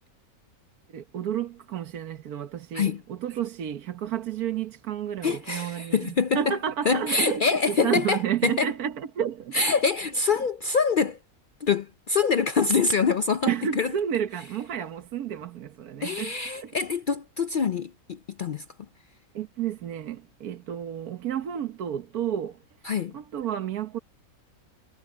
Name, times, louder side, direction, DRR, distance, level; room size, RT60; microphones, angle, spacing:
voice 1, 0.9-9.6 13.4-16.8 19.3-22.6 23.1-24.0, right 9 dB, 75° right, 1.5 m, -31 dB
voice 2, 5.2-6.5 6.9-8.7 9.5-11.2 11.6-13.9 16.0-18.6 22.8-23.1, left 5 dB, 75° left, 0.4 m, -25 dB
omnidirectional pair, 1.6 m